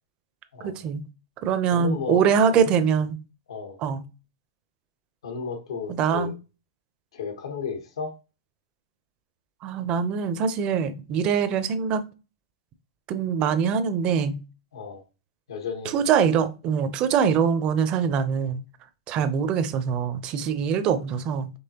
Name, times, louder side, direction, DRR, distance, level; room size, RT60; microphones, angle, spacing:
voice 1, 0.6-1.0 1.4-3.2 3.8-4.0 5.9-6.3 9.6-12.0 13.1-14.4 15.8-18.6 19.1-21.5, right 7 dB, 35° right, 0.6 m, -23 dB
voice 2, 1.7-2.2 3.5-3.8 5.2-6.3 7.1-8.1 14.7-15.0 15.5-16.0, left 6 dB, 85° left, 1.4 m, -33 dB
5.4 x 3.2 x 2.9 m
hypercardioid pair, 130°, 3 cm